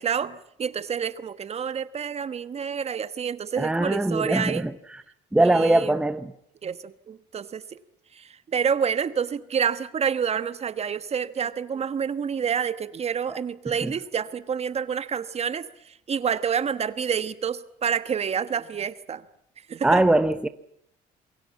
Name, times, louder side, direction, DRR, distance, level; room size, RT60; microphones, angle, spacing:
voice 1, 0.0-4.7 5.4-5.9 6.6-7.8 8.1-19.2 19.7-20.0, right 7 dB, 40° right, 1.2 m, -28 dB
voice 2, 3.6-4.7 5.3-6.3 13.8-13.9 19.8-20.5, right 2 dB, 5° right, 0.9 m, -21 dB
28.0 x 22.5 x 7.3 m
cardioid pair, 110°, 17 cm